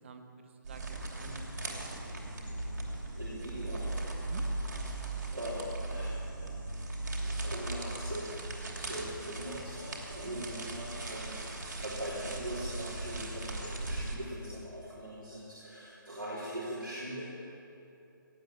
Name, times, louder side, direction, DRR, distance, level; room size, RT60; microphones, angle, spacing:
voice 1, 0.0-2.1 4.2-4.4 10.2-10.6, right 6 dB, 35° right, 7 dB, 1.0 m, -50 dB
sound 1, 0.6-14.2, right 2 dB, 60° right, 2.9 m, -38 dB
voice 2, 3.2-4.0 4.9-6.6 7.2-8.4 8.7-17.2, right 1 dB, 85° right, -8 dB, 3.5 m, -41 dB
17.5 x 8.9 x 7.5 m, 2.8 s
figure-of-eight pair, 140°, 11 cm